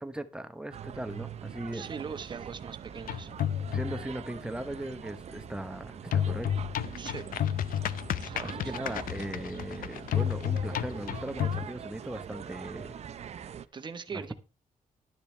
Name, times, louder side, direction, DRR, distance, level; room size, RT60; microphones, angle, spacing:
voice 1, 0.0-1.9 3.7-6.7 8.4-13.0 14.1-14.3, right 1 dB, 5° right, 0.8 m, -38 dB
sound 1, 0.7-13.7, right 8 dB, 50° right, 0.6 m, -43 dB
voice 2, 1.7-3.3 7.0-7.2 8.2-8.8 13.7-14.3, right 6 dB, 35° right, 1.1 m, -41 dB
sound 2, 3.0-4.1 6.1-11.7, left 10 dB, 85° left, 0.6 m, -31 dB
11.5 x 10.5 x 3.3 m
wide cardioid pair, 155°, 14 cm